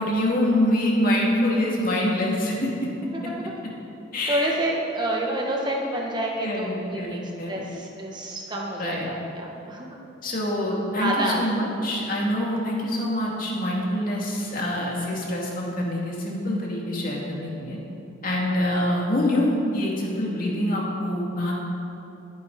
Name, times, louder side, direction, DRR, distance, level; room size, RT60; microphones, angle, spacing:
voice 1, 0.0-2.9 4.1-4.5 6.4-7.6 8.8-9.1 10.2-17.8 18.2-21.6, left 1 dB, 45° left, -3 dB, 2.7 m, -25 dB
voice 2, 4.3-10.0 10.9-11.5, right 1 dB, 20° right, -2 dB, 1.4 m, -28 dB
21.5 x 9.6 x 4.2 m, 2.8 s
head